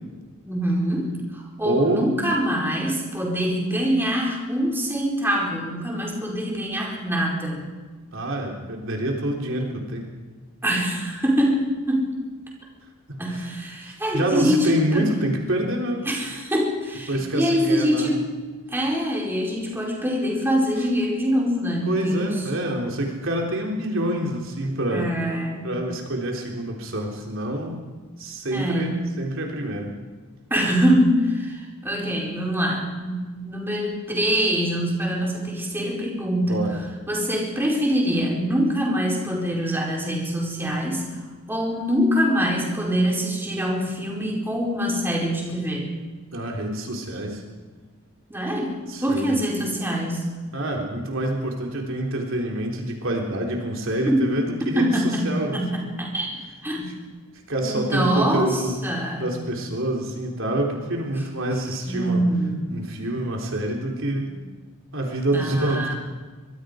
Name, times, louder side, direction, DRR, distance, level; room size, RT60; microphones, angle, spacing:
voice 1, 0.5-7.6 10.6-12.1 13.2-15.1 16.1-18.3 18.7-22.4 24.9-25.7 28.5-29.0 30.5-36.6 37.1-41.2 41.5-45.9 48.3-48.7 49.0-50.3 54.1-54.3 54.7-56.3 56.6-56.9 57.6-59.4 61.9-62.9 64.3-64.4 65.3-65.9, equal, 10° right, -2 dB, 4.5 m, -24 dB
voice 2, 1.6-2.1 8.1-10.1 13.1-13.5 13.8-16.1 17.1-18.1 21.8-25.1 25.6-27.8 28.2-29.9 36.4-36.8 46.3-47.4 48.9-49.4 50.5-54.9 55.2-55.6 57.5-58.7 59.2-62.3 62.7-64.3 64.9-65.9, right 1 dB, 60° right, 0 dB, 3.7 m, -26 dB
25.0 x 22.5 x 5.1 m, 1.4 s
head